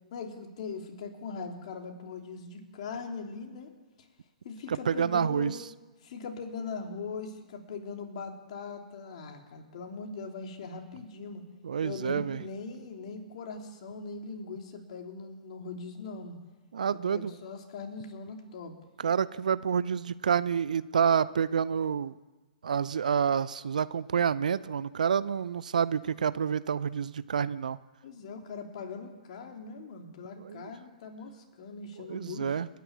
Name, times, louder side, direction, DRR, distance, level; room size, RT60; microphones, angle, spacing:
voice 1, 0.1-3.7 4.4-5.6 6.0-11.4 11.8-16.4 16.9-18.7 28.0-32.6, left 4 dB, 50° left, 3 dB, 3.3 m, -41 dB
voice 2, 4.7-5.5 11.6-12.4 16.7-17.3 19.0-22.1 22.6-27.8 30.4-30.6 32.1-32.7, right 7 dB, 65° right, 17 dB, 0.6 m, -28 dB
30.0 x 10.5 x 8.5 m, 1.2 s
figure-of-eight pair, 115°, 4 cm